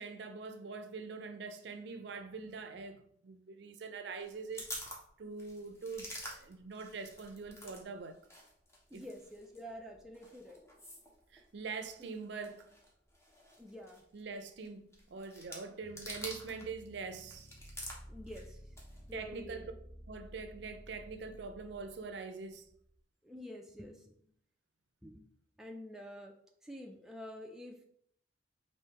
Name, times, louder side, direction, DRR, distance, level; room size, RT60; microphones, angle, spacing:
voice 1, 0.0-8.2 8.9-9.1 11.3-12.7 14.1-17.5 19.1-19.7 20.1-22.7, right 4 dB, 65° right, 0.4 m, -44 dB
sound 1, 4.2-16.7 17.0-19.1, left 1 dB, 15° left, 0.8 m, -49 dB
voice 2, 8.9-10.6 13.6-14.0 18.1-18.6 19.1-19.7 23.2-24.2 25.0-26.3 26.6-27.8, equal, 5° right, 0.3 m, -48 dB
sound 2, 15.8-22.9, equal, 50° left, 0.8 m, -54 dB
3.4 x 2.6 x 4.4 m
head